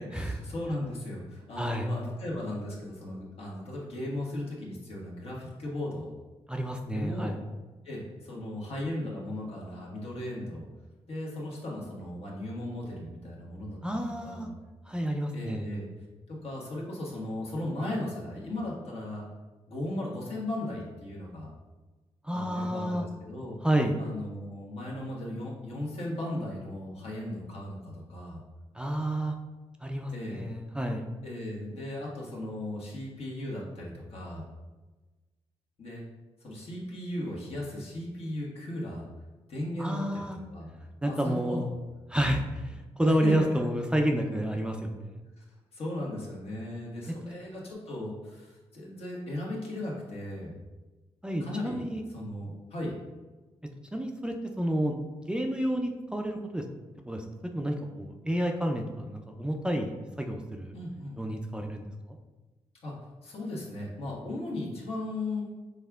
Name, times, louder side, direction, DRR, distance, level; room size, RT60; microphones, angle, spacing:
voice 1, 0.0-6.1 6.9-7.3 7.8-10.6 11.1-14.0 14.2-14.5 15.3-15.9 16.3-19.3 19.7-21.5 22.3-23.6 24.0-28.4 30.1-30.5 31.2-34.4 35.8-36.0 36.4-39.0 39.5-40.7 41.0-41.6 43.1-43.3 45.4-45.5 45.7-50.5 51.4-51.8 52.1-53.0 60.7-61.2 62.8-62.9 63.2-65.5, left 1 dB, 65° left, -3 dB, 1.3 m, -36 dB
voice 2, 1.6-1.9 6.5-7.4 13.8-14.5 14.9-15.7 22.2-23.1 23.6-24.0 28.7-29.4 29.8-31.1 39.8-40.4 41.0-41.7 42.1-45.2 47.2-47.3 51.2-52.0 53.9-55.0 55.3-56.7 57.1-57.2 57.5-60.7 61.2-61.8, equal, 10° right, 3 dB, 0.4 m, -30 dB
5.4 x 3.5 x 2.3 m, 1.2 s
cardioid pair, 75°, 11 cm